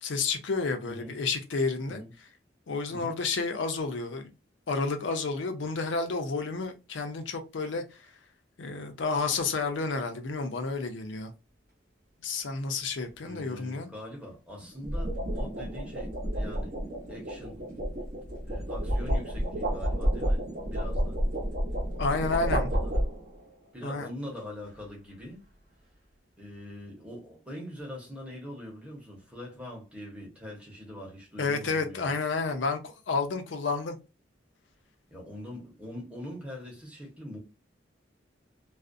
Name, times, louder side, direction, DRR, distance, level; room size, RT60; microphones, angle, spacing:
voice 1, 0.0-2.0 2.7-4.3 4.7-8.1 8.6-11.3 12.2-13.9 22.0-22.7 23.8-24.1 31.4-34.0, left 4 dB, 80° left, 0.5 m, -30 dB
sound 1, 9.1-9.4 14.6-23.5, equal, 45° right, 0.7 m, -30 dB
voice 2, 13.2-16.8 17.1-17.6 18.5-20.4 20.7-21.2 22.3-23.0 23.7-25.4 26.4-32.2 35.1-37.4, left 1 dB, 5° right, 0.8 m, -43 dB
2.4 x 2.0 x 2.5 m
head